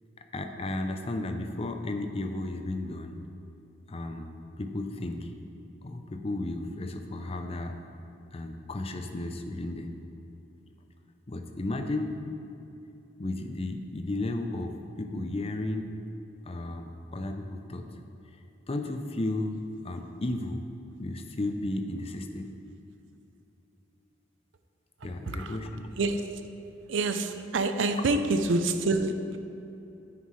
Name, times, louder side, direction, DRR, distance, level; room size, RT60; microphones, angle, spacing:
voice 1, 0.2-3.2 3.9-5.3 5.8-7.8 8.3-10.0 11.3-12.1 13.2-16.0 16.4-17.9 18.7-19.6 19.8-20.7 21.0-22.5 25.0-26.0 28.0-28.1, left 2 dB, 30° left, 6 dB, 0.6 m, -34 dB
voice 2, 26.9-29.4, right 3 dB, 80° right, 8 dB, 0.6 m, -27 dB
9.6 x 9.4 x 3.2 m, 2.9 s
head